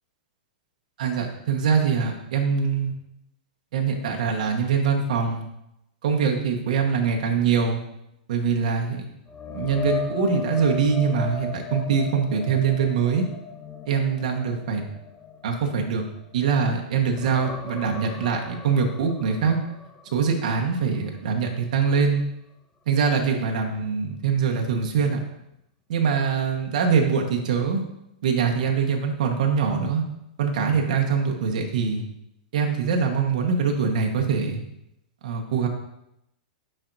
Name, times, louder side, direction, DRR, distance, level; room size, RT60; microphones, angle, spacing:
voice 1, 1.0-2.9 3.7-5.5 6.0-7.8 8.3-9.0 9.5-13.2 13.9-14.8 15.4-16.0 16.3-19.6 20.1-22.2 22.9-25.2 25.9-27.8 28.2-30.0 30.4-32.0 32.5-34.6 35.2-35.7, right 6 dB, 65° right, 1 dB, 1.3 m, -23 dB
sound 1, 9.3-16.7 17.0-20.9 21.3-21.5 24.9-25.0, left 4 dB, 15° left, 0.6 m, -36 dB
10.5 x 4.5 x 2.7 m, 0.83 s
hypercardioid pair, 145°, 5 cm